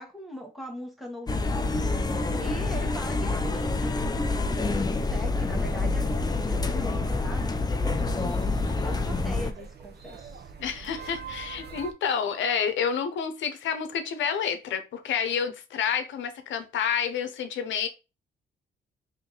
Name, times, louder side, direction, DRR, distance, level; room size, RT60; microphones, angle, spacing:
voice 1, 0.0-1.7 2.3-10.5 11.7-11.8, equal, ahead, 1.6 m, -41 dB
sound 1, 1.3-9.5, left 3 dB, 20° left, 0.6 m, -27 dB
sound 2, 5.5-11.9, right 5 dB, 55° right, 1.1 m, -44 dB
voice 2, 10.6-17.9, left 7 dB, 70° left, 0.9 m, -29 dB
3.8 x 3.2 x 3.9 m
cardioid pair, 90°, 20 cm